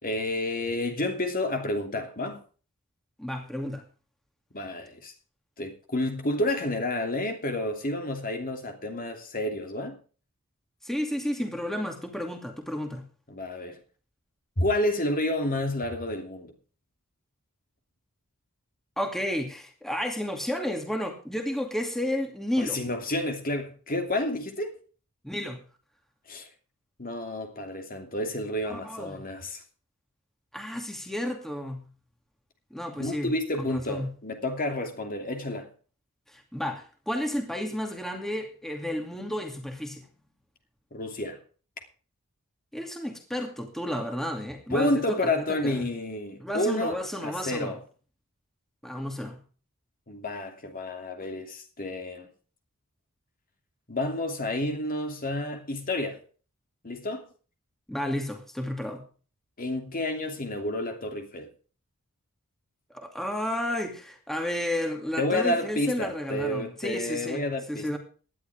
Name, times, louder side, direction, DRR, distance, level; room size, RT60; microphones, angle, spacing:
voice 1, 0.0-2.4 4.5-5.1 5.6-10.0 13.3-13.8 14.6-16.5 22.6-24.8 26.3-26.5 27.0-29.6 33.0-35.7 40.9-41.4 44.7-47.0 47.2-47.8 50.1-52.3 53.9-56.2 56.8-57.3 59.6-61.5 65.2-68.0, left 1 dB, 40° left, 2.8 m, -30 dB
voice 2, 3.2-3.8 10.8-13.1 19.0-22.8 25.2-25.6 28.7-29.2 30.5-31.9 32.7-34.1 36.3-40.1 42.7-45.9 46.4-47.7 48.8-49.4 57.9-59.0 62.9-68.0, left 1 dB, ahead, 2.5 m, -32 dB
18.0 x 11.5 x 3.6 m
head